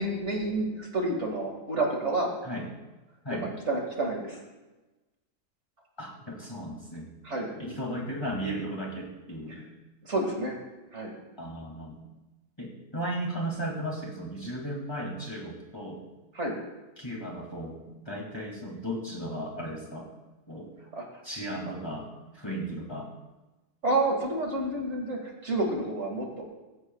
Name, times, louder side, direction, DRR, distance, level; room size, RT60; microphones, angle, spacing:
voice 1, 0.0-2.3 3.4-4.4 7.2-7.8 9.5-9.6 10.0-10.6 10.9-11.1 16.3-16.6 20.9-21.0 23.8-26.4, right 2 dB, 45° right, 0 dB, 2.4 m, -29 dB
voice 2, 6.0-7.1 7.6-9.7 11.4-12.0 12.6-16.0 17.0-20.1 20.5-20.7 21.2-22.1 22.3-23.1, right 1 dB, 15° left, -2 dB, 2.6 m, -35 dB
19.0 x 16.0 x 2.4 m, 1.1 s
omnidirectional pair, 1.7 m